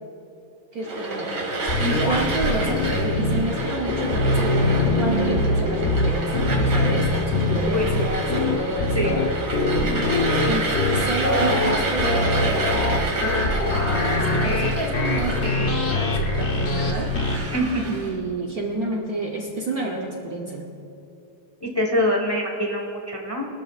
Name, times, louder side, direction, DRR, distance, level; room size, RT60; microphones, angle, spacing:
voice 1, 0.7-1.4 2.0-6.3 6.7-9.3 10.5-12.9 13.4-17.1 17.9-20.7, right 2 dB, 55° right, 0 dB, 1.2 m, -30 dB
sound 1, 0.8-18.1, right 2 dB, 80° right, 2.9 m, -29 dB
sound 2, 1.7-3.4 3.9-17.4, left 2 dB, 40° left, 1.2 m, -23 dB
voice 2, 17.5-17.8 21.6-23.4, left 1 dB, 15° left, 0 dB, 1.2 m, -24 dB
22.0 x 13.0 x 2.5 m, 2.7 s
omnidirectional pair, 2.3 m